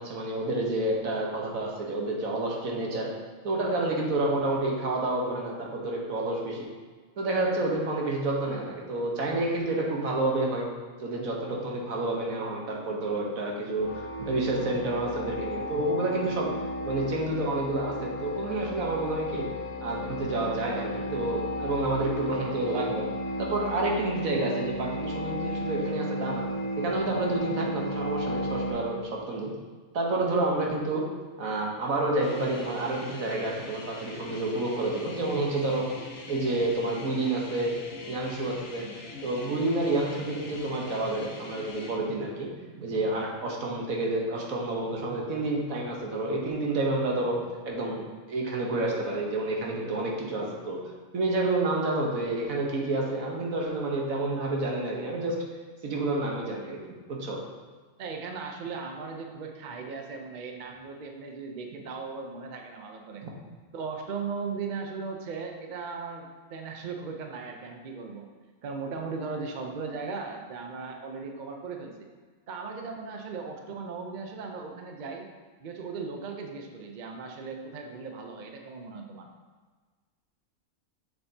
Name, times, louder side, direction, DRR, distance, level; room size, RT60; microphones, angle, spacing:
voice 1, 0.0-3.1 3.4-6.7 7.2-10.7 11.0-16.5 16.8-19.5 19.8-23.0 23.4-26.5 26.8-29.5 29.9-31.0 31.4-35.8 36.3-37.7 38.1-38.9 39.2-42.5 42.7-50.8 51.1-55.3 55.8-57.4 63.2-63.3, right 2 dB, 70° right, -1 dB, 1.5 m, -29 dB
sound 1, 13.8-28.7, equal, 80° left, 1.8 m, -34 dB
sound 2, 32.2-42.0, left 3 dB, 65° left, 1.3 m, -44 dB
voice 2, 58.0-63.3 63.7-68.3 68.6-72.1 72.5-75.3 75.6-79.3, right 4 dB, 50° right, 3 dB, 0.6 m, -37 dB
7.0 x 6.8 x 2.8 m, 1.4 s
omnidirectional pair, 1.5 m